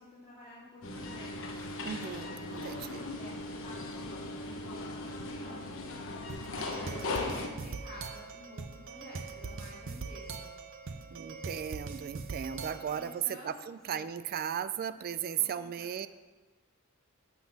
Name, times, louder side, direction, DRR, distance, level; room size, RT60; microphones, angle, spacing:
voice 1, 0.0-1.8 2.7-5.6 6.5-10.5 12.9-13.6 13.9-14.0 15.3-15.9, left 1 dB, 25° left, -11 dB, 2.7 m, -51 dB
sound 1, 0.8-7.5, left 2 dB, 65° left, 1.0 m, -38 dB
voice 2, 1.8-3.0 7.2-7.4 11.1-16.1, right 9 dB, 45° right, 13 dB, 0.3 m, -36 dB
sound 2, 6.3-13.1, right 4 dB, 60° right, 0.7 m, -42 dB
11.5 x 4.0 x 7.1 m, 1.3 s
head